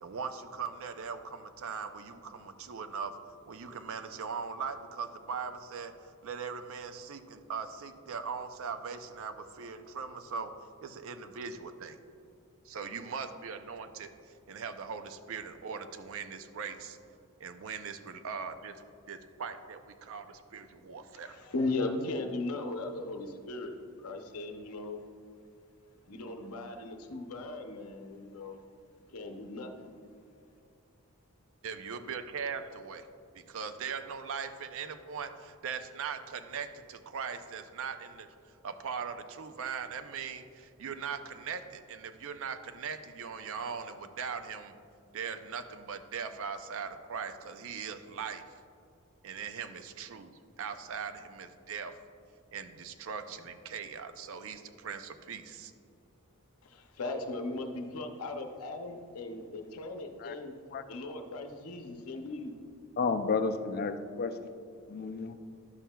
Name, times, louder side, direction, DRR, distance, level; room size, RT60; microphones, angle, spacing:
voice 1, 0.0-3.1 3.5-10.5 10.8-12.0 12.7-14.1 14.5-17.0 17.4-18.8 19.1-21.3 31.6-33.0 33.5-38.3 38.6-44.7 45.1-48.4 49.2-50.3 50.6-52.0 52.5-55.7, right 6 dB, 65° right, 9 dB, 0.5 m, -40 dB
voice 2, 21.2-25.0 26.1-28.6 29.1-29.9 56.6-60.6 60.9-62.5, left 2 dB, 80° left, 4 dB, 0.7 m, -37 dB
voice 3, 63.0-64.3 64.9-65.4, left 4 dB, 45° left, 10 dB, 0.4 m, -31 dB
11.0 x 7.3 x 2.3 m, 2.5 s
head